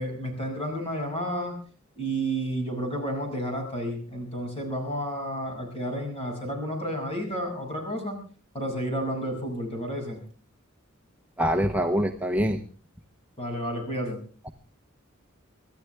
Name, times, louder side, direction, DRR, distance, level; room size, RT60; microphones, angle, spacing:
voice 1, 0.0-1.5 2.0-8.2 8.5-10.2 13.4-14.2, equal, 30° left, 2 dB, 6.4 m, -31 dB
voice 2, 11.4-12.6 14.4-14.5, equal, 5° right, 3 dB, 0.9 m, -24 dB
25.0 x 14.0 x 3.4 m, 0.40 s
head